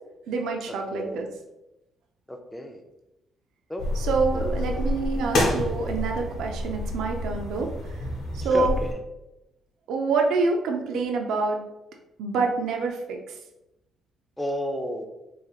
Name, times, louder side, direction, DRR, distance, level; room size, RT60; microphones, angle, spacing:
voice 1, 0.3-1.3 3.9-8.1 8.3-8.7 9.9-11.6 12.2-13.4, right 4 dB, 85° right, 3 dB, 0.5 m, -27 dB
voice 2, 0.9-1.2 2.3-2.8 3.7-3.8 4.3-4.6 8.5-8.9 14.4-15.1, equal, 10° left, 4 dB, 0.5 m, -31 dB
sound 1, 3.8-8.9, left 1 dB, 80° left, 1.1 m, -28 dB
3.6 x 3.2 x 2.4 m, 0.92 s
cardioid pair, 90°, 0 cm